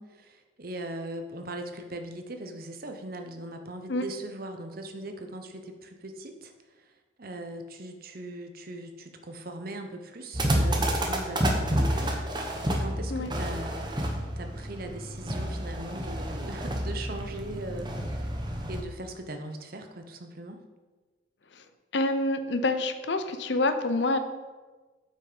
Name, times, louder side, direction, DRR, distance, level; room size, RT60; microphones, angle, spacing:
voice 1, 0.0-6.5 6.8-6.9 7.2-18.0 18.2-20.6, right 1 dB, 50° right, 5 dB, 0.9 m, -40 dB
sound 1, 10.3-18.8, equal, 25° right, 0.9 m, -29 dB
voice 2, 21.9-24.2, left 2 dB, 65° left, 9 dB, 0.7 m, -27 dB
8.8 x 5.8 x 5.2 m, 1.3 s
head